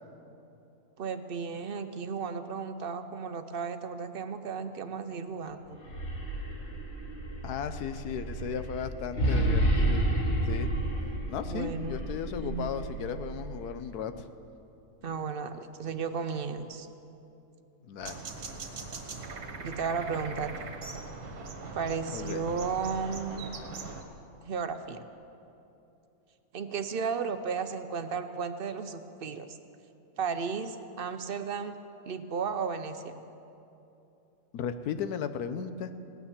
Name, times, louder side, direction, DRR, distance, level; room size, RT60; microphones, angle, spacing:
voice 1, 1.0-5.8 11.4-12.0 12.4-12.8 15.0-16.9 19.6-20.5 21.7-23.4 24.4-25.0 26.5-29.6 30.2-31.8 32.1-33.2, right 5 dB, 55° right, 9 dB, 0.6 m, -34 dB
sound 1, 5.7-13.9, right 1 dB, 45° left, 2.0 m, -31 dB
voice 2, 7.4-10.0 10.5-10.7 11.3-14.3 17.8-18.2 22.1-22.4 34.5-35.9, left 7 dB, 85° left, 10 dB, 1.3 m, -35 dB
sound 2, 18.0-24.0, right 4 dB, 90° right, 2.0 m, -41 dB
18.0 x 9.4 x 7.2 m, 2.8 s
omnidirectional pair, 1.6 m